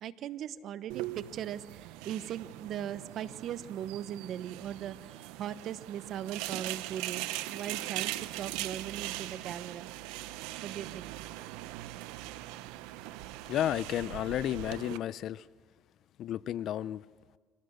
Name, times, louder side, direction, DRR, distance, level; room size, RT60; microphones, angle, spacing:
voice 1, 0.0-9.9 10.3-10.4 10.6-11.1, right 10 dB, 65° right, 14 dB, 1.0 m, -39 dB
sound 1, 0.9-15.0, right 16 dB, 90° right, 0.7 m, -40 dB
voice 2, 13.5-15.5 16.2-17.0, left 11 dB, 65° left, 18 dB, 0.6 m, -32 dB
25.5 x 17.5 x 6.5 m, 1.5 s
supercardioid pair, 85°, 0 cm